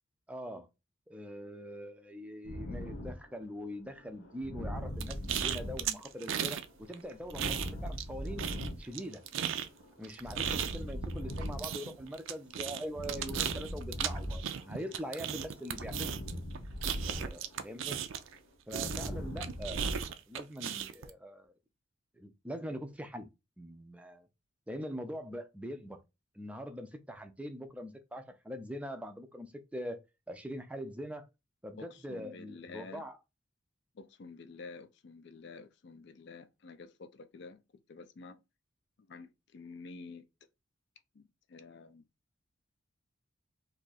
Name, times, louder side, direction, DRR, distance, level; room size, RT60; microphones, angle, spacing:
voice 1, 0.3-0.7 1.1-8.5 8.8-9.2 10.0-16.1 17.0-18.0 18.7-21.5 22.2-24.3 24.7-26.0 26.3-30.0 30.3-31.3 31.6-33.2, equal, 5° right, 0.4 m, -43 dB
sound 1, 2.4-15.1 15.3-20.0, equal, 85° left, 0.9 m, -41 dB
sound 2, 5.0-6.6 6.9-8.1 8.4-18.4 18.7-21.1, right 9 dB, 75° right, 0.4 m, -36 dB
voice 2, 31.8-33.0 34.0-37.6 37.9-38.4 39.1-40.2 41.2-41.3 41.5-42.0, left 4 dB, 55° left, 0.4 m, -49 dB
2.7 x 2.4 x 4.0 m
head